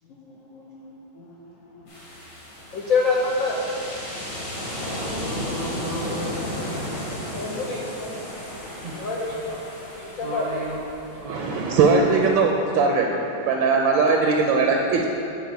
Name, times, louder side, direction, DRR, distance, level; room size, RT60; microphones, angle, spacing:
voice 1, 0.1-1.9 2.7-3.6 7.3-8.2 9.0-9.6 10.0-10.5, left 4 dB, 75° left, -3 dB, 0.7 m, -28 dB
sound 1, 1.9-11.6, equal, 55° left, 2.2 m, -34 dB
voice 2, 5.1-6.6 8.8-9.0 10.2-10.8 11.1-11.9, right 1 dB, 50° right, -5 dB, 0.6 m, -34 dB
voice 3, 11.2-13.1 13.4-15.1, right 4 dB, 75° right, 1 dB, 1.2 m, -20 dB
6.9 x 4.1 x 6.3 m, 2.9 s
omnidirectional pair, 2.3 m